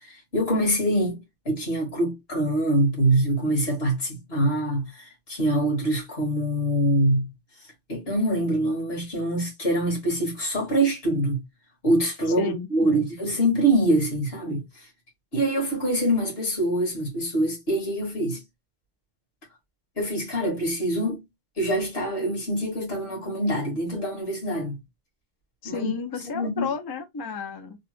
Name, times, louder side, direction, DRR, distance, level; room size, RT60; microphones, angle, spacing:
voice 1, 0.1-1.2 1.5-7.3 7.9-11.4 11.8-14.6 15.3-18.4 20.0-21.2 21.6-24.8 25.6-25.9 26.3-26.7, right 1 dB, 65° left, 1.8 m, -24 dB
voice 2, 12.4-13.0 25.6-27.8, left 5 dB, 40° left, 0.3 m, -32 dB
3.4 x 2.0 x 3.1 m
omnidirectional pair, 1.1 m